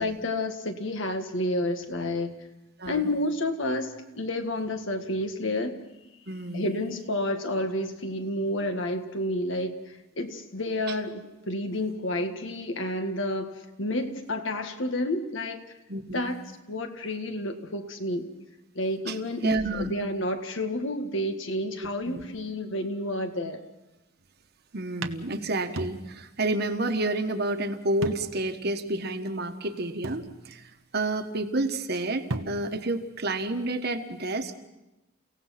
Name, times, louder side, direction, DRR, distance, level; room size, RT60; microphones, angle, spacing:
voice 1, 0.0-2.3 2.9-5.8 6.5-9.8 10.2-15.6 16.1-16.4 16.7-18.3 18.8-23.6, left 1 dB, 65° left, 7 dB, 1.8 m, -30 dB
voice 2, 6.3-6.8 10.9-11.0 15.9-16.3 19.1-19.2 19.4-19.9 22.0-22.2 24.7-30.6 30.9-34.5, right 2 dB, 50° right, 6 dB, 1.4 m, -30 dB
sound 1, 24.2-24.5 25.0-26.4 26.7-26.8 28.0-28.5 29.0-29.1 30.0-30.8 32.0-32.1 32.3-32.9, right 2 dB, 80° right, 1.1 m, -36 dB
30.0 x 17.0 x 5.9 m, 0.97 s
head